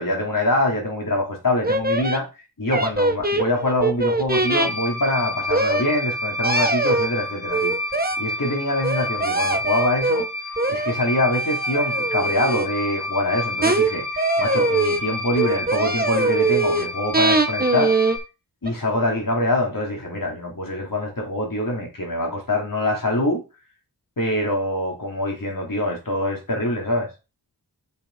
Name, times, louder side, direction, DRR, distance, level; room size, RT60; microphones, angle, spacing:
voice 1, 0.0-2.3 2.6-7.7 8.2-10.2 10.7-14.1 14.4-17.9 18.6-23.4 24.2-27.1, left 1 dB, 55° left, 4.1 m, -24 dB
sound 1, 1.6-2.2 2.7-4.7 5.5-5.8 6.4-7.1 7.5-8.2 8.8-10.2 10.6-10.9 11.3-12.7 13.6-13.9 14.2-15.0 15.4-16.9 17.1-18.2 18.7-18.8, right 3 dB, 25° right, 1.3 m, -22 dB
sound 2, 4.3-18.2, left 1 dB, 35° left, 3.9 m, -29 dB
7.2 x 6.9 x 4.4 m
wide cardioid pair, 60°, 40 cm